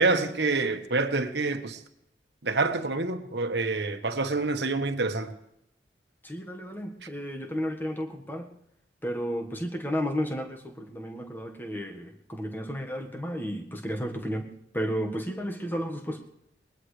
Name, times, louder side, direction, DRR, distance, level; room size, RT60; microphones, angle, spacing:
voice 1, 0.0-1.8 2.4-5.3, right 3 dB, 80° right, 1.3 m, -27 dB
voice 2, 6.2-8.5 9.0-16.2, equal, 10° left, 1.4 m, -33 dB
20.0 x 20.0 x 3.3 m
head